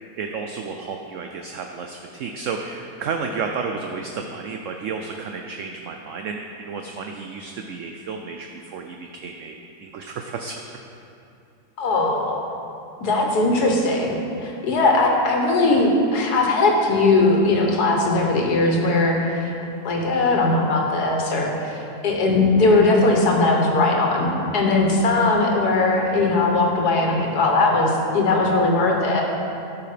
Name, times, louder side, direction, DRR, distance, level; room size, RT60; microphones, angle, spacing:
voice 1, 0.2-10.6, right 5 dB, 65° right, 3 dB, 0.8 m, -32 dB
voice 2, 11.8-12.4 13.0-19.5 19.8-29.2, left 2 dB, 75° left, 1 dB, 1.7 m, -19 dB
12.5 x 5.7 x 5.0 m, 2.7 s
omnidirectional pair, 1.7 m